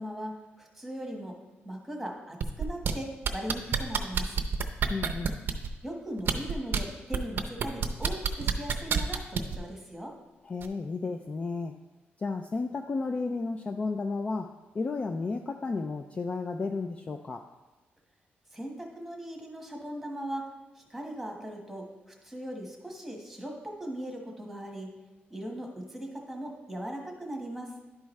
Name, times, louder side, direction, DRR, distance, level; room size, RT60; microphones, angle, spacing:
voice 1, 0.0-1.4 1.6-4.3 5.8-10.1 18.5-20.5 20.7-24.9 25.3-27.7, right 1 dB, ahead, 0 dB, 1.3 m, -39 dB
sound 1, 2.4-2.9 3.2-5.7 6.2-6.8 7.1-9.6 10.6-10.7, right 7 dB, 55° right, 0.6 m, -27 dB
voice 2, 4.9-5.3 10.4-11.7 12.2-17.4, left 3 dB, 30° left, 5 dB, 0.3 m, -33 dB
11.0 x 4.7 x 3.2 m, 1.2 s
cardioid pair, 130°, 4 cm